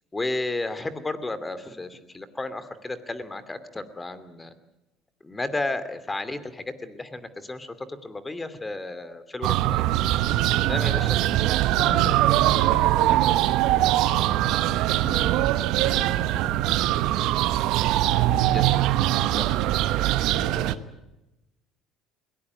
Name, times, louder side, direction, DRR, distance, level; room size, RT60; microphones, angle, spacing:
voice 1, 0.1-4.5 5.2-9.8 10.7-11.2 18.4-18.8 19.3-19.6, left 2 dB, 20° left, 13 dB, 2.6 m, -33 dB
sound 1, 9.4-20.7, right 14 dB, 70° right, 0.9 m, -22 dB
voice 2, 11.8-17.3 20.3-20.9, left 3 dB, 85° left, 4 dB, 4.0 m, -40 dB
22.0 x 18.0 x 9.5 m, 0.95 s
supercardioid pair, 75°, 0 cm